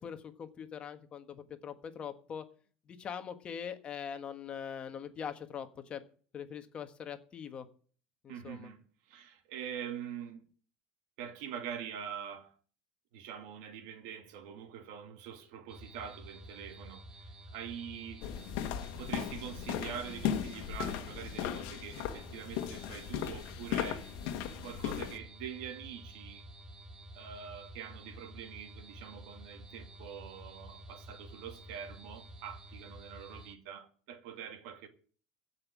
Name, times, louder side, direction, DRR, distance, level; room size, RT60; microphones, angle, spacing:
voice 1, 0.0-2.4 2.9-6.0 6.3-7.7 8.2-8.7, left 7 dB, 30° left, 1.4 m, -42 dB
voice 2, 8.3-8.8 9.1-10.4 11.2-12.5 13.1-18.3 19.0-24.1 24.6-26.5 27.1-34.9, right 8 dB, 80° right, 2.2 m, -44 dB
sound 1, 15.7-33.6, right 1 dB, 15° right, 1.2 m, -51 dB
sound 2, 18.2-25.2, left 10 dB, 80° left, 1.4 m, -37 dB
15.5 x 5.7 x 8.6 m
cardioid pair, 145°, 4 cm